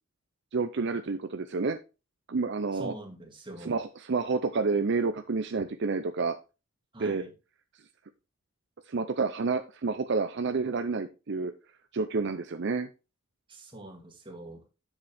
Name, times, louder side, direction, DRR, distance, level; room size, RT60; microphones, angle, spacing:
voice 1, 0.5-1.8 2.3-2.9 3.6-6.3 7.0-7.2 8.9-11.5 11.9-12.9, right 4 dB, 60° right, 9 dB, 0.6 m, -29 dB
voice 2, 2.7-3.8 6.9-7.3 13.5-14.6, right 1 dB, 25° right, 2 dB, 2.1 m, -43 dB
7.8 x 7.3 x 3.4 m, 0.29 s
head